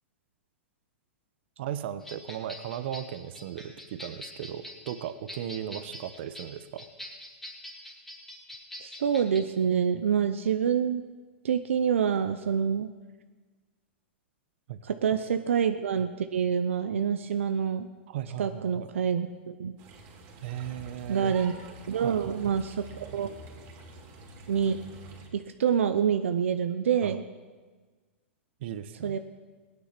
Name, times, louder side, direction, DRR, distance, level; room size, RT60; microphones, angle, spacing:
voice 1, 1.6-6.9 14.7-14.8 15.1-15.2 18.1-18.9 20.4-21.4 22.0-22.4 27.0-27.2 28.6-29.2, right 10 dB, 60° right, 12 dB, 1.0 m, -37 dB
sound 1, 2.0-9.4, left 1 dB, 5° left, 1.9 m, -45 dB
voice 2, 8.8-11.0 11.4-12.9 14.8-17.9 18.4-19.8 21.1-21.5 21.9-23.3 24.5-24.8 25.3-27.2 29.0-29.2, right 7 dB, 85° right, 8 dB, 0.6 m, -27 dB
sound 2, 19.8-25.3, right 2 dB, 40° right, 3.0 m, -46 dB
17.5 x 9.4 x 5.9 m, 1.4 s
hypercardioid pair, 130°, 7 cm